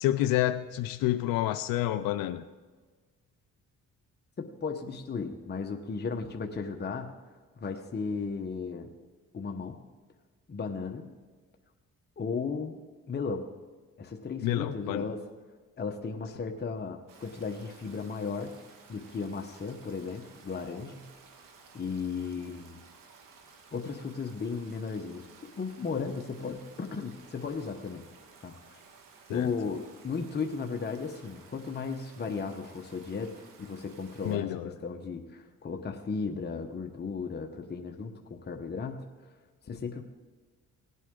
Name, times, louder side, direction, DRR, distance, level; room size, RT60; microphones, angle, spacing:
voice 1, 0.0-2.4 14.4-15.1 29.3-29.5 34.2-34.7, left 14 dB, 90° left, 10 dB, 0.5 m, -29 dB
voice 2, 4.4-7.1 7.6-8.9 9.3-9.8 10.5-11.1 12.2-12.8 13.1-13.4 14.0-15.3 15.8-18.6 18.9-21.0 21.7-22.8 23.7-25.3 25.6-28.0 28.4-28.8 29.3-39.1 39.7-40.0, left 5 dB, 30° left, 3 dB, 1.0 m, -35 dB
Stream, 17.1-34.4, right 5 dB, 75° right, 1.6 m, -55 dB
18.0 x 8.2 x 3.8 m, 1.4 s
cardioid pair, 85°, 33 cm